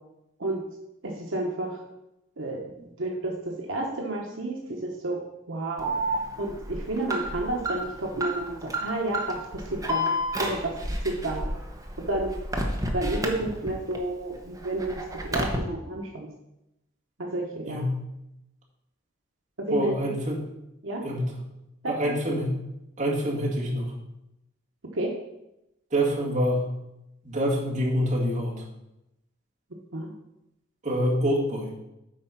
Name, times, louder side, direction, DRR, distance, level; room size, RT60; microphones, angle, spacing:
voice 1, 1.0-1.8 2.4-2.7 3.0-5.2 5.5-6.0 6.4-11.5 12.0-12.4 12.9-16.3 17.2-17.9 19.7-19.9 20.8-21.0 21.8-21.9 24.9-25.1 29.9-30.1, right 2 dB, 80° right, 0 dB, 1.1 m, -31 dB
Alarm, 5.8-14.0 14.3-15.6, equal, 15° right, 1.0 m, -30 dB
voice 2, 19.7-20.4 21.0-21.4 21.9-22.5 23.0-23.9 25.9-26.7 27.2-28.6 30.8-31.7, equal, 40° right, -4 dB, 2.2 m, -26 dB
8.6 x 4.5 x 5.8 m, 0.89 s
head